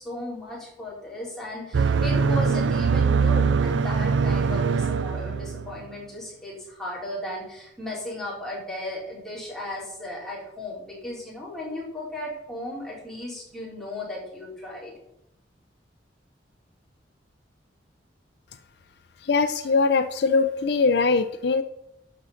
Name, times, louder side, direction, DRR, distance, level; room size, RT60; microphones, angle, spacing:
voice 1, 0.0-14.9, left 1 dB, 5° left, -6 dB, 4.1 m, -35 dB
sound 1, 1.7-5.8, right 5 dB, 80° right, 0.5 m, -22 dB
voice 2, 19.2-21.6, left 4 dB, 65° left, 10 dB, 0.5 m, -22 dB
12.5 x 5.1 x 5.7 m, 0.80 s
head